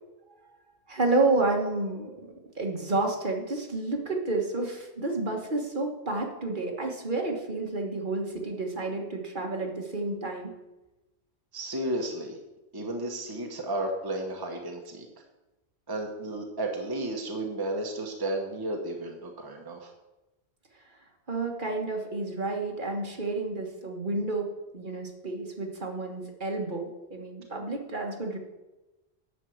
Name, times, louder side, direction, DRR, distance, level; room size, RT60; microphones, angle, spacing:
voice 1, 0.9-2.3 2.5-10.5 21.3-24.5 24.7-28.4, right 2 dB, 50° right, 2 dB, 1.6 m, -30 dB
voice 2, 11.5-12.4 12.7-15.1 15.9-19.9, right 1 dB, 20° right, 2 dB, 1.1 m, -33 dB
11.0 x 4.6 x 7.8 m, 1.0 s
omnidirectional pair, 1.1 m